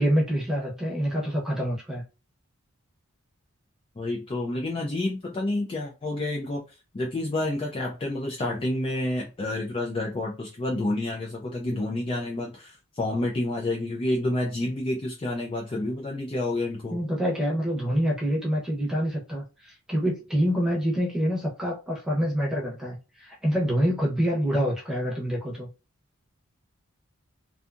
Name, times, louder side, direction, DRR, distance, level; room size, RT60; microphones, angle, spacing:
voice 1, 0.0-2.0 16.9-25.7, equal, 5° right, 0.8 m, -26 dB
voice 2, 4.0-6.6 6.9-17.0, left 2 dB, 25° left, 0.4 m, -29 dB
2.6 x 2.3 x 2.5 m
head